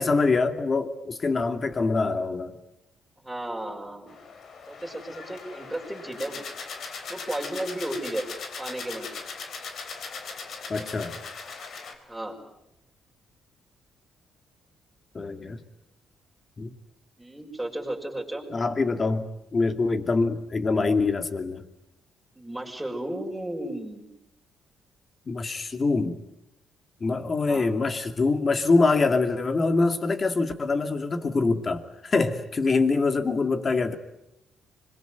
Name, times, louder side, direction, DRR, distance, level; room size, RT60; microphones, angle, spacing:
voice 1, 0.0-2.6 10.7-11.2 15.1-15.6 16.6-16.7 18.5-19.2 19.5-21.6 25.3-26.2 27.0-34.0, left 3 dB, 35° left, 8 dB, 2.6 m, -24 dB
voice 2, 3.2-4.2 4.7-6.4 7.1-8.3 8.6-9.1 12.1-12.4 17.2-18.4 22.4-24.0 27.4-27.8, right 1 dB, 5° right, 0 dB, 5.9 m, -34 dB
sound 1, 4.1-11.9, left 5 dB, 60° left, 3.8 m, -39 dB
25.5 x 22.5 x 9.4 m, 0.86 s
cardioid pair, 90°, 0 cm